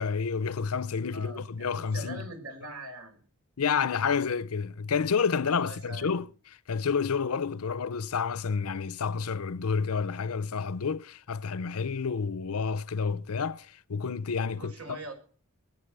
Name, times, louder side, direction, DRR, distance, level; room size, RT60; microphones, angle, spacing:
voice 1, 0.0-2.2 3.6-6.3 6.7-15.0, left 5 dB, 80° left, 0.6 m, -29 dB
voice 2, 1.1-3.2 5.4-6.2 7.6-7.8 14.6-15.1, right 1 dB, 85° right, 6.1 m, -43 dB
21.5 x 8.4 x 6.8 m
head